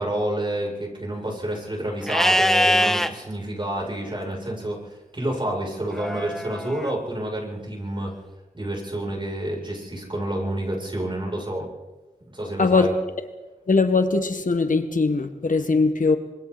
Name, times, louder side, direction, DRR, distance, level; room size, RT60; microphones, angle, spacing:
voice 1, 0.0-8.1 8.5-11.7 12.3-12.9, right 1 dB, 35° right, -2 dB, 7.7 m, -29 dB
Livestock farm animals working animals, 2.1-3.1 5.9-6.9, equal, 5° left, 1.5 m, -22 dB
voice 2, 12.6-12.9 13.7-16.2, left 3 dB, 70° left, 7 dB, 1.8 m, -20 dB
26.0 x 23.0 x 4.3 m, 1.1 s
cardioid pair, 55°, 14 cm